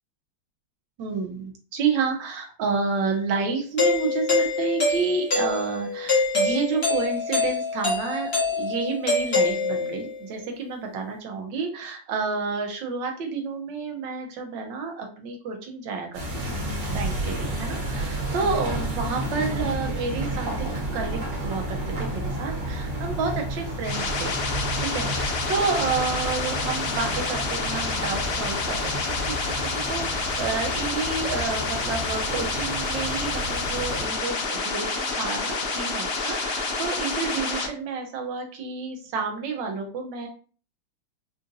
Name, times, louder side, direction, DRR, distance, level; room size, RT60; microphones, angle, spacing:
voice 1, 1.0-16.6 16.9-20.7 20.9-24.3 24.8-40.3, right 4 dB, 80° right, 3 dB, 1.5 m, -30 dB
Doorbell, 3.8-10.1, left 3 dB, 40° left, 1.2 m, -25 dB
sound 1, 16.1-34.1, right 1 dB, 60° right, 1.9 m, -31 dB
sound 2, 23.8-37.7, left 3 dB, 70° left, 0.5 m, -28 dB
4.8 x 2.5 x 2.6 m, 0.41 s
omnidirectional pair, 2.0 m